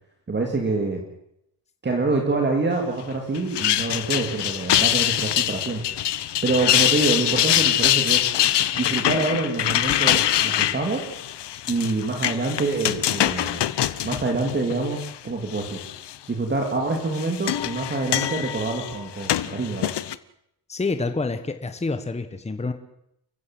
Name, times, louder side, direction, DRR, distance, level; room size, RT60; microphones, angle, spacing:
voice 1, 0.3-1.0 1.8-5.8 6.4-8.3 8.7-11.0 11.7-13.6 14.0-15.8 16.3-19.9, right 3 dB, 25° right, 2 dB, 3.0 m, -26 dB
sound 1, 3.3-15.1 15.5-16.1 16.9-20.2, left 12 dB, 75° left, 1.0 m, -24 dB
voice 2, 20.7-22.7, left 3 dB, 15° left, 8 dB, 1.3 m, -27 dB
29.5 x 15.5 x 7.8 m, 0.78 s
wide cardioid pair, 165°, 41 cm